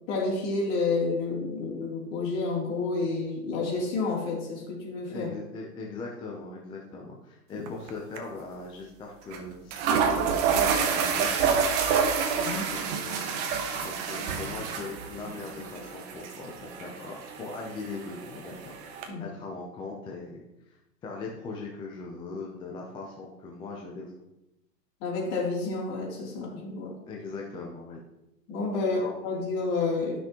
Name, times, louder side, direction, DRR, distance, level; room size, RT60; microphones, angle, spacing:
voice 1, 0.1-5.3 7.5-7.6 12.3-12.7 19.1-19.2 25.0-26.9 28.5-30.2, left 3 dB, 45° left, -2 dB, 3.3 m, -30 dB
voice 2, 5.1-11.8 12.7-24.1 27.1-28.0 28.8-29.0, left 3 dB, 10° left, -1 dB, 0.5 m, -40 dB
sound 1, 7.7-7.9 8.2-8.3 9.3-9.4 9.7-19.1, right 6 dB, 35° right, 1.1 m, -28 dB
13.0 x 6.2 x 3.0 m, 0.91 s
hypercardioid pair, 130°, 50 cm